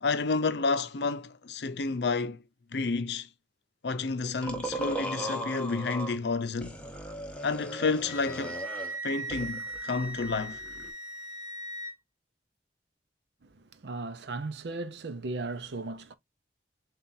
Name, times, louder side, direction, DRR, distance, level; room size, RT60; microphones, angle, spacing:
voice 1, 0.0-2.4 2.7-3.3 3.8-6.8 7.4-8.6 9.0-10.6, left 4 dB, 65° left, 0.6 m, -30 dB
sound 1, 4.4-6.2 6.6-9.0 9.3-10.9, right 1 dB, 5° left, 0.8 m, -37 dB
Wind instrument woodwind instrument, 8.0-11.9, right 2 dB, 15° right, 1.6 m, -39 dB
voice 2, 13.4-16.1, right 3 dB, 70° right, 0.6 m, -37 dB
7.0 x 2.4 x 2.6 m
head